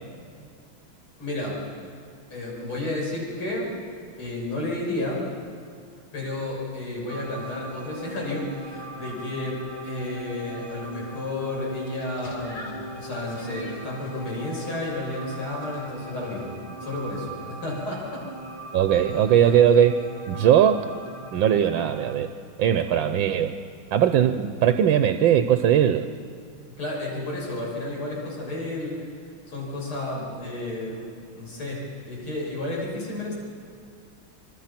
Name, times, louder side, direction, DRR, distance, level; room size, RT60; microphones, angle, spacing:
voice 1, 1.2-1.6 2.3-3.7 4.2-5.2 6.1-18.2 26.8-29.1 29.5-31.1 31.3-33.3, left 2 dB, 85° left, -3 dB, 7.8 m, -32 dB
sound 1, 7.1-22.2, right 2 dB, 10° left, 2.1 m, -39 dB
sound 2, 11.6-16.5, left 1 dB, 60° left, 4.4 m, -46 dB
voice 2, 18.7-20.0 20.3-20.9 21.3-22.3 22.6-23.5 23.9-26.1, right 9 dB, 70° right, 9 dB, 1.5 m, -19 dB
25.5 x 25.5 x 5.9 m, 2.2 s
omnidirectional pair, 2.3 m